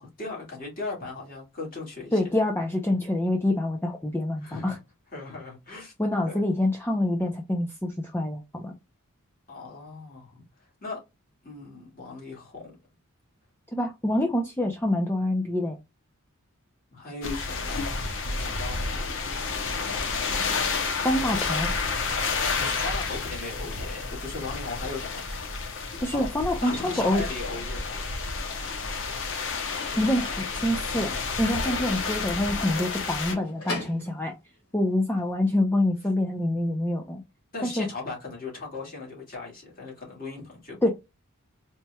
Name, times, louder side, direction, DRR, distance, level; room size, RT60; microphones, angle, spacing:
voice 1, 0.0-2.2 4.4-4.8 5.1-5.9 6.3-6.4 9.5-11.0 11.4-12.6 16.9-18.0 18.2-19.4 22.5-25.6 26.1-26.3 26.6-28.0 37.5-40.9, left 3 dB, 40° left, 1.9 m, -38 dB
voice 2, 2.1-4.8 6.0-8.7 13.7-15.8 21.0-21.7 26.0-27.2 30.0-34.4 34.7-37.2 37.6-37.9 40.8-40.9, left 1 dB, 10° left, 0.5 m, -26 dB
sound 1, 17.2-33.3, left 4 dB, 60° left, 0.9 m, -30 dB
Slam / Squeak / Wood, 29.0-35.3, left 2 dB, 80° left, 2.4 m, -42 dB
4.3 x 3.0 x 2.2 m
head